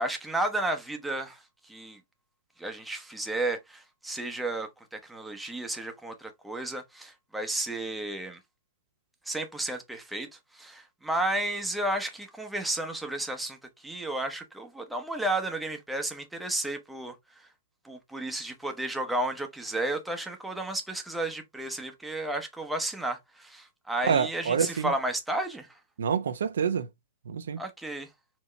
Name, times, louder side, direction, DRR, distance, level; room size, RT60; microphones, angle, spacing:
voice 1, 0.0-2.0 2.6-8.4 9.2-17.5 17.8-25.8 27.6-28.1, right 1 dB, 5° right, 0.9 m, -33 dB
voice 2, 24.0-24.9 26.0-26.9 27.3-27.6, right 7 dB, 75° right, 0.6 m, -27 dB
4.4 x 2.9 x 3.1 m
hypercardioid pair, 135°, 0 cm